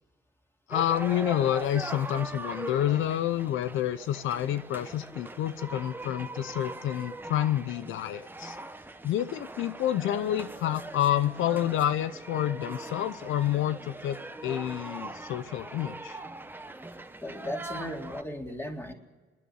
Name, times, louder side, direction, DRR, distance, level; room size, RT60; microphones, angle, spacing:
voice 1, 0.7-8.6 9.0-14.2 14.4-16.2, left 11 dB, 85° left, 13 dB, 0.7 m, -29 dB
sound 1, 0.7-18.2, right 2 dB, 10° right, 1.1 m, -41 dB
voice 2, 17.2-18.9, left 1 dB, 10° left, 1 dB, 3.6 m, -36 dB
26.5 x 11.0 x 9.6 m, 1.3 s
cardioid pair, 90°, 20 cm